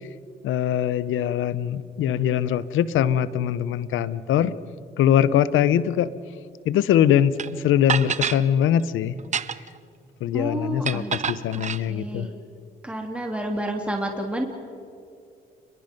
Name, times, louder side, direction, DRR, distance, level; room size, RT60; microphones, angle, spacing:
voice 1, 0.4-4.5 5.0-6.1 6.7-7.4 7.6-9.1 10.2-12.3, left 10 dB, 80° left, 16 dB, 0.9 m, -22 dB
sound 1, 7.4-7.5 7.9-8.4 9.2-9.8 10.8-11.8, right 7 dB, 35° right, 0.8 m, -27 dB
voice 2, 10.3-11.2 11.5-11.6 11.9-12.3 12.8-14.5, right 1 dB, 5° right, 1 dB, 3.0 m, -29 dB
29.5 x 21.5 x 5.3 m, 2.4 s
cardioid pair, 90°, 20 cm